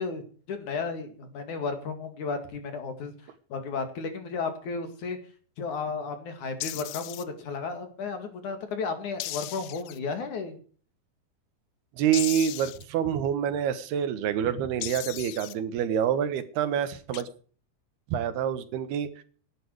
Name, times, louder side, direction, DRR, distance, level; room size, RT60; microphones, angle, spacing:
voice 1, 0.0-3.1 3.5-5.2 5.6-10.6, left 4 dB, 55° left, 7 dB, 3.4 m, -33 dB
sound 1, 6.6-7.2 9.2-10.0 12.1-12.8 14.8-15.5 17.1-17.2, left 17 dB, 80° left, 2.6 m, -36 dB
voice 2, 12.0-17.3 18.1-19.2, right 9 dB, 80° right, 12 dB, 3.3 m, -27 dB
17.5 x 11.0 x 4.7 m, 0.42 s
omnidirectional pair, 4.6 m